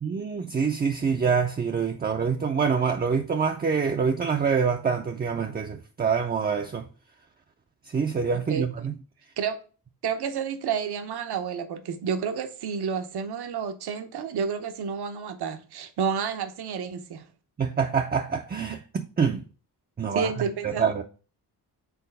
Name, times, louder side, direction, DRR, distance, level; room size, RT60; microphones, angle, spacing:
voice 1, 0.0-6.9 7.9-8.9 17.6-19.4 20.0-20.3 20.6-21.0, right 6 dB, 25° right, 0.4 m, -26 dB
voice 2, 10.0-17.2 20.1-20.9, right 6 dB, 75° right, 0.9 m, -30 dB
4.6 x 4.0 x 5.2 m
wide cardioid pair, 145°, 39 cm